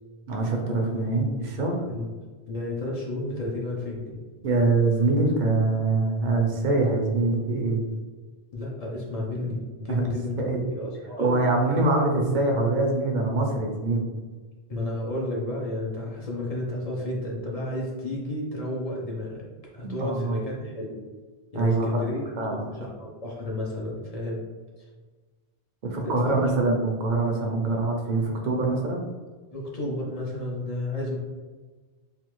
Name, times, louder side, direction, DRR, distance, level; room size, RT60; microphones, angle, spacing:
voice 1, 0.3-1.8 4.4-7.8 9.4-9.5 9.9-10.6 11.2-14.1 19.8-20.4 21.5-22.0 22.4-22.6 25.8-29.0, right 2 dB, 55° right, 1 dB, 0.7 m, -24 dB
voice 2, 2.5-4.2 8.5-10.4 10.7-11.8 14.7-19.4 19.7-21.0 21.5-24.4 24.8-24.9 26.0-26.5 29.5-31.2, left 1 dB, 45° left, -3 dB, 0.7 m, -32 dB
3.3 x 2.4 x 3.0 m, 1.4 s
omnidirectional pair, 1.0 m